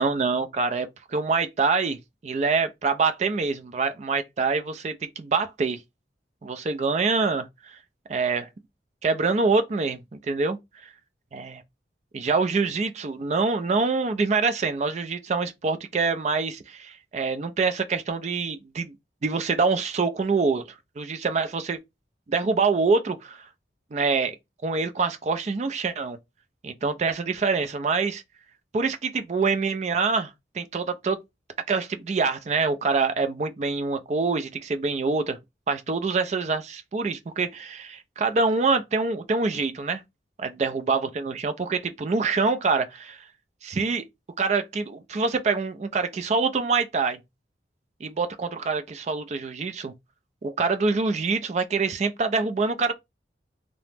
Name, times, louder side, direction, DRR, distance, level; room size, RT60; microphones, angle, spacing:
voice 1, 0.0-5.8 6.4-7.8 8.1-8.5 9.0-10.6 10.8-10.9 11.3-11.5 12.1-19.0 19.2-20.6 21.0-21.8 22.3-23.5 23.9-24.4 24.6-26.2 26.6-28.2 28.7-31.2 31.7-35.4 35.7-40.0 40.4-43.3 43.6-44.0 44.4-47.2 48.0-49.9 50.4-52.9, right 4 dB, 40° right, 0.3 m, -25 dB
2.8 x 2.0 x 3.3 m
head